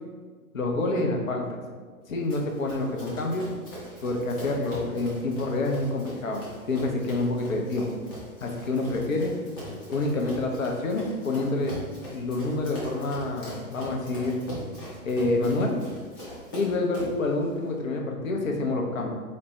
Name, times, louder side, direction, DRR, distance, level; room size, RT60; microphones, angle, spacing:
voice 1, 0.5-1.6 2.1-3.5 4.0-7.9 8.4-9.3 9.9-11.8 12.1-14.4 15.0-15.7 16.5-19.1, left 2 dB, 60° left, 1 dB, 0.8 m, -27 dB
Run, 2.3-17.2, equal, 15° left, 0.5 m, -41 dB
4.2 x 2.2 x 3.9 m, 1.5 s
figure-of-eight pair, 120°, 45 cm